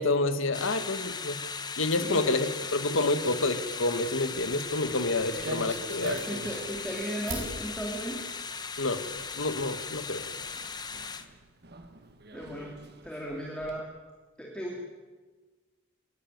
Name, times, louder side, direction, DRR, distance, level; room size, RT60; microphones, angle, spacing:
voice 1, 0.0-1.4 1.8-6.2 8.8-9.0 9.3-10.3, left 2 dB, 75° left, 10 dB, 1.7 m, -28 dB
sound 1, 0.5-11.3, left 5 dB, 20° left, 1.0 m, -38 dB
sound 2, 2.7-9.9, right 3 dB, 85° right, 7.5 m, -48 dB
Walk footsteps, 4.3-13.8, right 2 dB, 50° right, 1.7 m, -45 dB
voice 2, 6.1-8.2 12.3-12.7 13.0-13.9 14.4-14.8, equal, 5° left, -3 dB, 2.8 m, -36 dB
29.0 x 12.5 x 9.4 m, 1.3 s
head